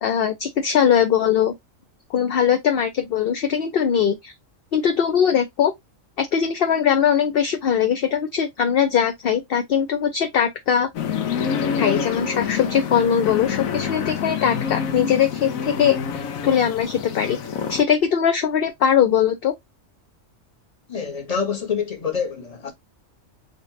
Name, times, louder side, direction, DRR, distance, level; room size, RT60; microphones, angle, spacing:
voice 1, 0.0-1.5 2.1-4.3 4.7-5.7 6.2-10.9 11.8-17.4 17.7-19.5, left 8 dB, 55° left, 0.7 m, -21 dB
sound 1, 10.9-17.8, left 7 dB, 85° left, 1.2 m, -27 dB
voice 2, 20.9-22.7, left 6 dB, 30° left, 1.1 m, -26 dB
3.8 x 3.5 x 2.7 m
omnidirectional pair, 1.4 m